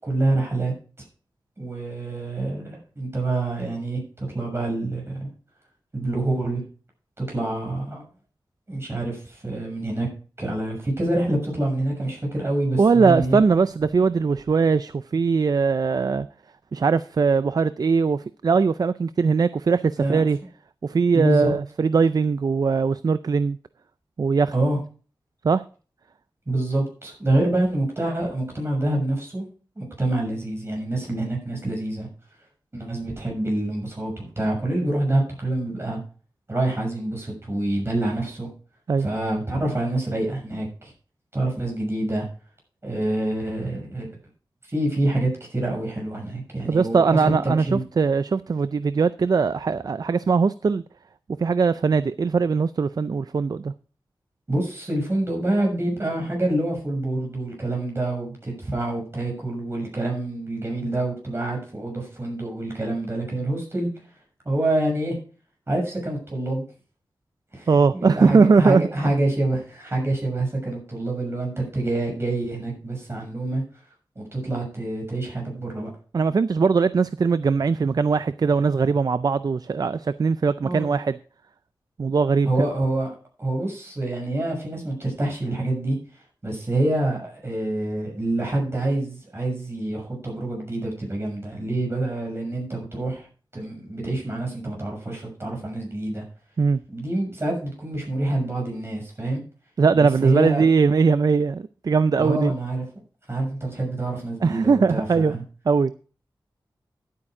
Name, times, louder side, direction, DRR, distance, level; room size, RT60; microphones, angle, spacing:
voice 1, 0.0-0.7 1.6-5.3 5.9-6.6 7.2-8.0 8.7-10.1 10.4-13.4 20.0-20.3 21.1-21.5 24.5-24.8 26.5-29.4 29.8-32.1 32.7-36.0 36.5-38.5 39.0-40.9 41.3-42.2 42.8-44.1 44.7-47.8 54.5-63.9 64.4-65.2 65.7-66.6 67.5-73.6 74.1-75.9 80.6-80.9 82.5-83.1 83.4-86.0 86.4-93.3 93.5-96.2 96.9-99.4 99.9-100.6 102.2-102.8 103.3-105.4, right 1 dB, 30° right, 6.5 m, -26 dB
voice 2, 12.8-16.3 16.7-20.4 20.8-23.6 24.2-24.5 25.4-25.6 38.9-39.1 46.7-50.8 51.4-53.7 67.7-68.9 76.1-81.2 82.0-82.5 96.6-96.8 99.8-102.5 104.4-105.4 105.7-105.9, right 5 dB, 50° right, 0.4 m, -20 dB
11.5 x 8.6 x 4.9 m
wide cardioid pair, 85°, 8 cm